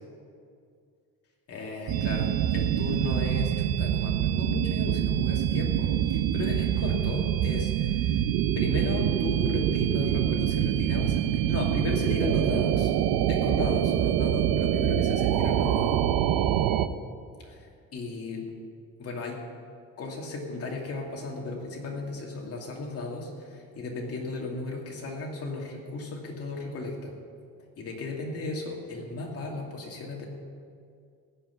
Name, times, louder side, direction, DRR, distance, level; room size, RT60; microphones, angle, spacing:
voice 1, 1.5-8.2 8.5-12.9 13.3-16.0 17.4-17.6 17.9-18.5 19.0-19.4 20.0-27.2 27.8-30.3, left 3 dB, 45° left, -1 dB, 2.6 m, -35 dB
sound 1, 1.9-16.9, right 11 dB, 80° right, 0.7 m, -25 dB
15.5 x 5.9 x 9.8 m, 2.3 s
cardioid pair, 165°, 35 cm